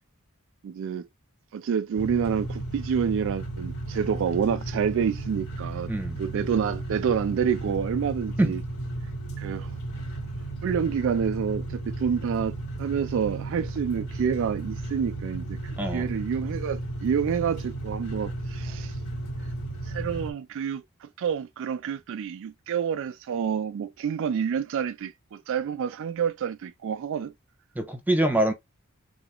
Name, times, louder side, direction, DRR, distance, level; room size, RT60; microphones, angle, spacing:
voice 1, 0.6-1.1 1.5-5.9 6.2-8.6 9.4-9.7 10.6-15.6 15.9-19.0 19.8-27.3, right 7 dB, 60° right, 0.3 m, -28 dB
sound 1, 1.9-20.3, right 2 dB, 85° left, 2.7 m, -34 dB
voice 2, 15.8-16.1 27.7-28.5, right 1 dB, 10° right, 1.1 m, -24 dB
3.9 x 2.9 x 3.7 m
head